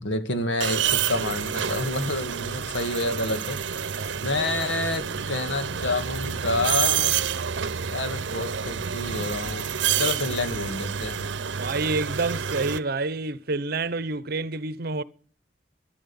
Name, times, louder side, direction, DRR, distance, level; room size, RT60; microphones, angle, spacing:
voice 1, 0.0-3.6 3.9-7.2 7.9-9.7 10.0-11.2, left 2 dB, 90° left, 2.1 m, -28 dB
sound 1, 0.6-12.8, right 8 dB, 90° right, 0.7 m, -28 dB
voice 2, 11.5-15.0, right 3 dB, 55° right, 0.9 m, -28 dB
13.5 x 11.0 x 7.1 m
head